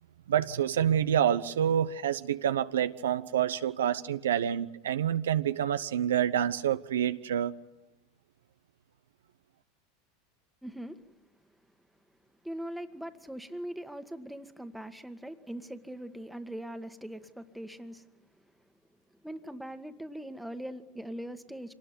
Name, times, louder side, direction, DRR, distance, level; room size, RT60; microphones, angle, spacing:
voice 1, 0.3-7.5, right 9 dB, 80° right, 11 dB, 0.9 m, -27 dB
voice 2, 10.6-11.0 12.4-18.1 19.2-21.7, right 1 dB, ahead, 9 dB, 1.8 m, -41 dB
26.0 x 19.0 x 9.6 m, 0.96 s
hypercardioid pair, 90°, 0 cm